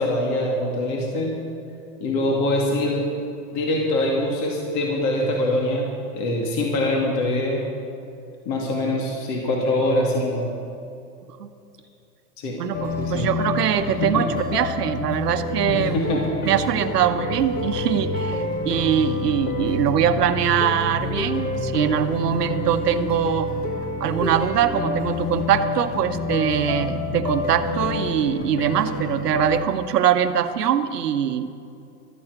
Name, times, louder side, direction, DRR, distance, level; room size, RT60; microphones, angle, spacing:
voice 1, 0.0-1.4 2.0-3.0 3.5-5.9 6.1-7.7 8.4-10.5 12.4-12.6 13.0-13.3 14.0-14.3 15.7-16.3, left 1 dB, 35° left, -1 dB, 2.5 m, -23 dB
voice 2, 12.6-16.2 16.4-23.5 24.0-31.5, right 9 dB, 75° right, 9 dB, 1.1 m, -22 dB
sound 1, 12.7-29.7, left 2 dB, 20° left, 1.1 m, -28 dB
13.0 x 8.7 x 8.1 m, 2.6 s
hypercardioid pair, 130°, 47 cm